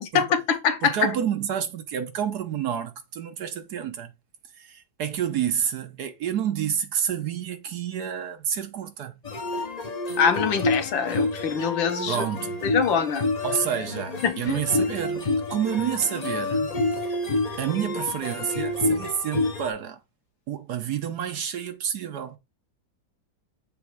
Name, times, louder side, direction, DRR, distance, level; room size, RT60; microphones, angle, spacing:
voice 1, 0.0-1.0 10.2-12.2 12.6-13.3 14.2-14.4, left 7 dB, 90° left, 1.8 m, -24 dB
voice 2, 0.8-4.1 4.6-9.2 12.1-12.6 13.4-16.7 17.0-17.2 17.6-20.0 20.5-22.4, right 9 dB, 65° right, 1.3 m, -29 dB
sound 1, 9.2-19.7, left 2 dB, 40° left, 0.5 m, -28 dB
7.1 x 3.1 x 4.6 m
omnidirectional pair, 2.0 m